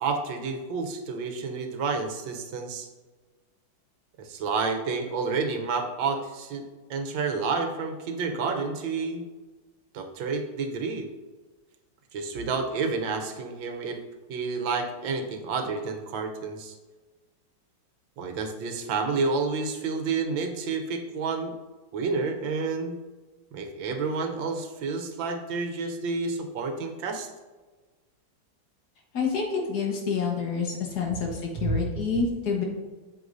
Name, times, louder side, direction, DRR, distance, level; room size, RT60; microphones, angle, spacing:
voice 1, 0.0-2.9 4.2-6.6 6.9-9.3 9.9-11.1 12.1-14.0 14.3-16.7 18.2-21.5 21.9-23.0 23.5-27.3 31.6-31.7, right 4 dB, 80° right, 5 dB, 1.5 m, -30 dB
voice 2, 29.1-32.6, left 5 dB, 55° left, 0 dB, 1.8 m, -28 dB
7.9 x 7.0 x 2.6 m, 1.3 s
omnidirectional pair, 2.1 m